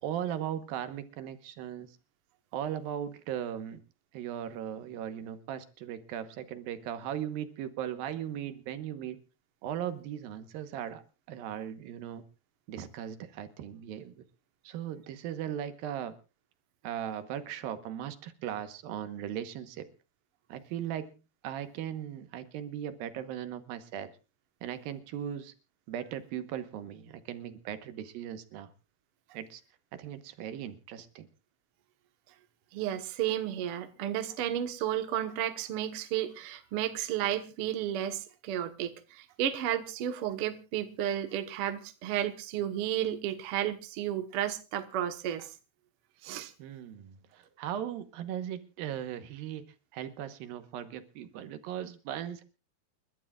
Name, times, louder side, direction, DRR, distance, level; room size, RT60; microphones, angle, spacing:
voice 1, 0.0-1.9 2.5-3.8 4.1-9.2 9.6-11.0 11.3-12.2 12.7-14.2 14.6-16.1 16.8-19.9 20.5-21.1 21.4-24.1 24.6-25.5 25.9-28.7 29.3-29.6 29.9-31.3 46.6-49.7 49.9-52.4, right 10 dB, 80° right, 2.8 m, -38 dB
voice 2, 32.7-45.5 46.2-46.5, right 11 dB, 60° right, 1.4 m, -32 dB
29.0 x 12.0 x 2.4 m
omnidirectional pair, 4.3 m